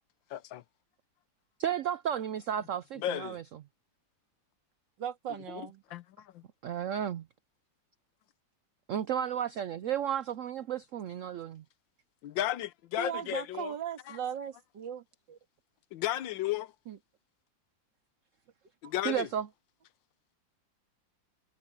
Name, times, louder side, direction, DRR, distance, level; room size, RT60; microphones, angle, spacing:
voice 1, 0.3-0.6 3.0-3.4 5.5-6.4 12.2-13.7 14.1-14.2 15.9-16.7 18.8-19.3, left 13 dB, 80° left, 1.5 m, -34 dB
voice 2, 1.6-3.4 6.6-7.3 8.9-11.6 19.0-19.5, right 9 dB, 90° right, 0.6 m, -33 dB
voice 3, 5.0-5.8 13.0-15.4 16.9-17.0, right 8 dB, 70° right, 2.5 m, -38 dB
omnidirectional pair, 2.0 m